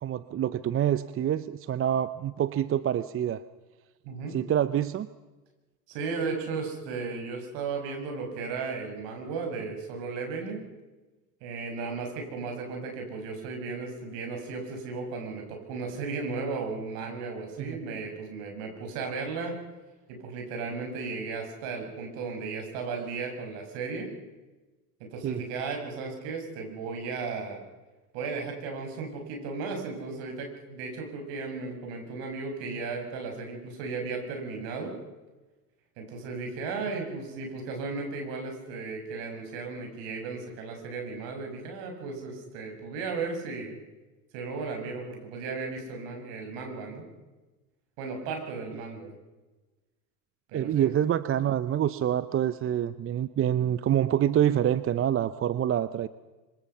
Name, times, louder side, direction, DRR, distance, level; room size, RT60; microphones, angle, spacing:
voice 1, 0.0-3.4 4.3-5.1 17.7-17.8 25.2-25.4 50.5-56.1, right 10 dB, 30° right, 15 dB, 0.7 m, -26 dB
voice 2, 4.0-4.4 5.9-10.7 11.4-19.6 20.1-24.1 25.0-27.6 28.1-34.9 36.0-43.8 44.3-47.1 48.0-49.1 50.5-50.9, right 4 dB, 60° right, 3 dB, 6.5 m, -35 dB
25.5 x 25.5 x 5.7 m, 1.2 s
hypercardioid pair, 80°, 47 cm